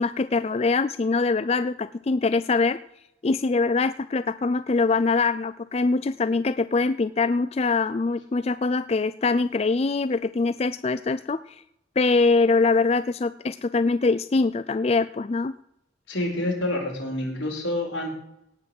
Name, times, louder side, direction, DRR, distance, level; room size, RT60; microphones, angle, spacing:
voice 1, 0.0-2.8 3.2-11.6 12.0-15.5, left 3 dB, 35° left, 14 dB, 0.4 m, -23 dB
voice 2, 16.1-18.1, left 1 dB, 80° left, 1 dB, 4.8 m, -28 dB
18.0 x 6.1 x 7.8 m, 0.78 s
head